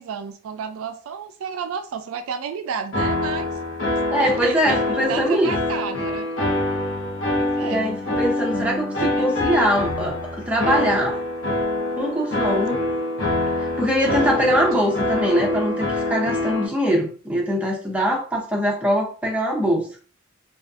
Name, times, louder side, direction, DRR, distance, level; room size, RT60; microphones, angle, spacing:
voice 1, 0.0-3.5 4.2-6.3 7.3-7.8 9.2-9.3 18.8-18.9, right 7 dB, 75° right, 8 dB, 0.3 m, -31 dB
sound 1, 2.9-16.7, left 2 dB, 65° left, 0.7 m, -25 dB
voice 2, 4.1-5.5 7.6-10.2 10.5-11.2 12.0-12.8 13.6-19.9, equal, 5° right, -2 dB, 0.5 m, -22 dB
2.4 x 2.3 x 2.4 m, 0.40 s
head